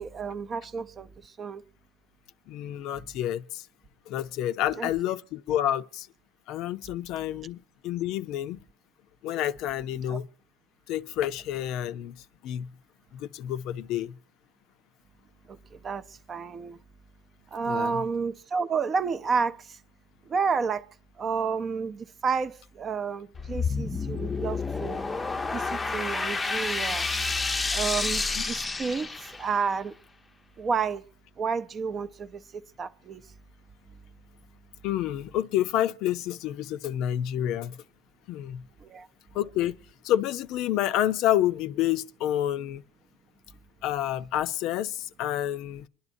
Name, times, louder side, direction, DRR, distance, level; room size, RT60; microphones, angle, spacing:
voice 1, 0.0-1.6 4.8-4.9 10.1-10.2 15.5-16.8 17.5-19.8 20.3-20.9 21.2-25.0 25.5-27.1 27.7-29.9 30.6-31.0 31.4-33.2 38.8-39.1, right 5 dB, 30° right, 0.5 m, -31 dB
voice 2, 2.5-3.7 4.1-6.1 6.5-8.6 9.2-10.3 10.9-12.2 12.4-12.7 13.1-14.2 17.6-18.0 28.4-28.5 34.8-37.8 38.3-38.6 39.3-39.8 40.0-42.8 43.8-45.9, left 12 dB, 60° left, 0.5 m, -29 dB
sound 1, 23.3-29.6, left 4 dB, 15° left, 0.6 m, -30 dB
25.5 x 11.0 x 2.6 m
cardioid pair, 140°, 0 cm